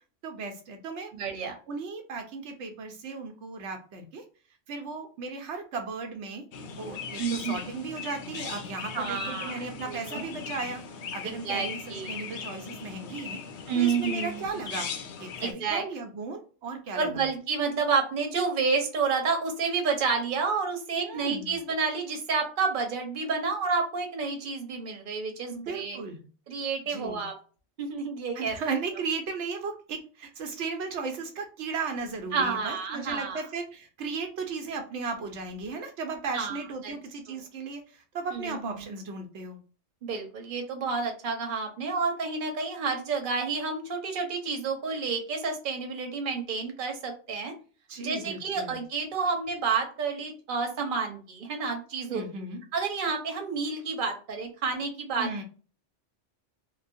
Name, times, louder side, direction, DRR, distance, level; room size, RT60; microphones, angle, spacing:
voice 1, 0.2-1.1 1.7-4.2 4.7-6.4 6.8-10.8 11.1-13.4 13.7-14.9 15.2-17.3 20.9-21.6 25.5-26.3 26.9-27.3 28.4-39.6 47.9-48.8 52.1-52.6 55.2-55.4, right 4 dB, 80° right, 4 dB, 0.9 m, -36 dB
voice 2, 1.1-1.5 7.2-7.6 8.9-10.2 11.2-12.1 13.7-14.6 15.4-15.8 17.0-26.0 26.5-27.3 27.8-28.6 32.3-33.4 36.3-36.6 36.8-36.9 37.3-37.4 38.3-38.8 40.0-47.5 48.0-52.2 52.7-55.4, right 5 dB, 50° right, 4 dB, 0.8 m, -30 dB
Chirp tweet, 6.5-15.5, left 6 dB, 75° left, 0.8 m, -38 dB
3.0 x 2.0 x 2.5 m, 0.38 s
omnidirectional pair, 1.2 m